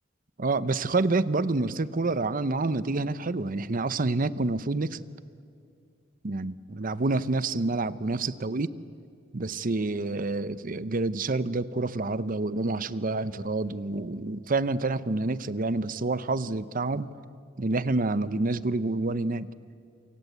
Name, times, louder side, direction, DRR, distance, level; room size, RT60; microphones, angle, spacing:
voice 1, 0.4-5.0 6.2-8.7 9.3-17.1 17.6-19.5, right 3 dB, 45° right, 15 dB, 0.8 m, -28 dB
27.5 x 26.0 x 8.2 m, 2.3 s
head